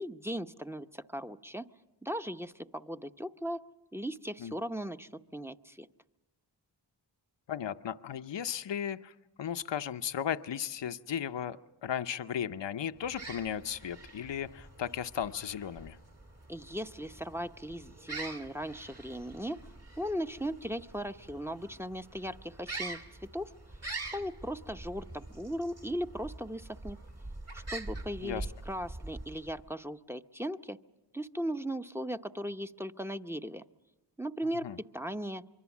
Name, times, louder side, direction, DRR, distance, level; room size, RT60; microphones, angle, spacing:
voice 1, 0.0-1.7 2.0-3.6 3.9-5.9 16.5-19.6 20.0-23.0 23.3-23.5 24.1-27.0 27.5-30.8 31.1-33.6 34.2-34.7 34.9-35.4, equal, 5° right, 9 dB, 0.8 m, -37 dB
voice 2, 7.5-16.0 28.2-28.5 34.6-34.8, left 9 dB, 70° left, 11 dB, 0.8 m, -36 dB
sound 1, 13.0-29.7, right 2 dB, 35° right, 1.6 m, -45 dB
25.0 x 23.5 x 7.2 m, 1.0 s
cardioid pair, 45°, 46 cm